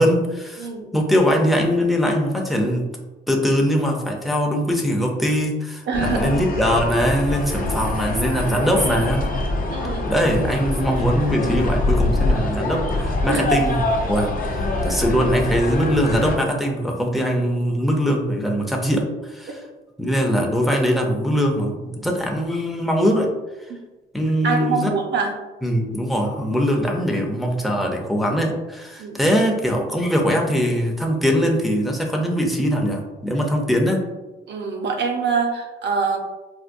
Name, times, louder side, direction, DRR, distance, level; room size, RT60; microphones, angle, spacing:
voice 1, 0.0-0.7 0.9-2.9 3.3-9.2 10.1-14.3 14.8-19.6 20.0-23.3 24.1-24.9 25.6-34.0, equal, ahead, 0 dB, 0.6 m, -21 dB
voice 2, 0.6-0.9 5.9-6.4 9.7-10.1 13.3-13.7 24.4-25.3 29.0-29.2 34.5-36.2, right 5 dB, 60° right, 2 dB, 0.7 m, -24 dB
sound 1, 5.9-16.4, left 2 dB, 45° left, 0.6 m, -24 dB
4.6 x 2.1 x 2.5 m, 1.1 s
cardioid pair, 90°, 20 cm